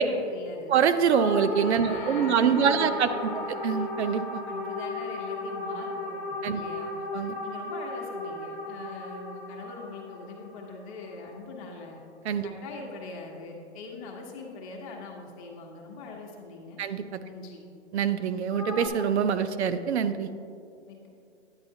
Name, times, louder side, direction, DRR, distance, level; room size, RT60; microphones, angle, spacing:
voice 1, 0.0-0.7 1.8-3.5 4.5-7.0 7.4-12.0 12.4-16.8 17.2-17.6 20.9-21.1, left 3 dB, 30° left, 0 dB, 1.0 m, -42 dB
voice 2, 0.7-3.1 3.6-4.4 6.4-6.6 7.1-7.3 12.3-12.5 16.8-17.0 17.9-20.3, right 7 dB, 70° right, 12 dB, 0.6 m, -24 dB
sound 1, 1.0-11.5 18.5-18.9, left 2 dB, 5° left, 1.2 m, -35 dB
9.8 x 8.7 x 2.7 m, 2.5 s
hypercardioid pair, 150°, 35 cm